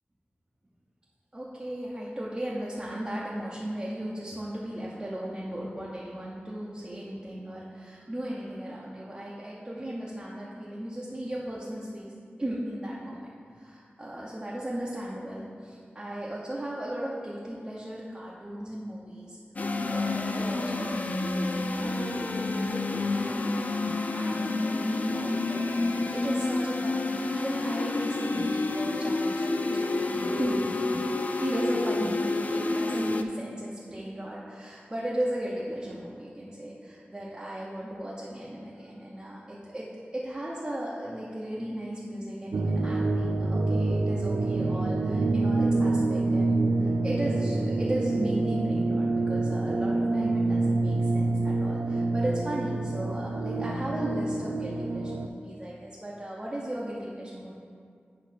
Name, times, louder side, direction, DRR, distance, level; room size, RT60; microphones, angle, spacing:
voice 1, 1.3-12.1 12.4-19.4 19.6-23.4 24.1-30.6 31.4-57.6, right 1 dB, 20° right, -7 dB, 0.9 m, -36 dB
sound 1, 19.6-33.2, left 2 dB, 40° left, 0.4 m, -29 dB
sound 2, 42.5-55.3, right 2 dB, 85° right, 0.3 m, -27 dB
8.3 x 3.1 x 5.9 m, 2.2 s
wide cardioid pair, 85°, 4 cm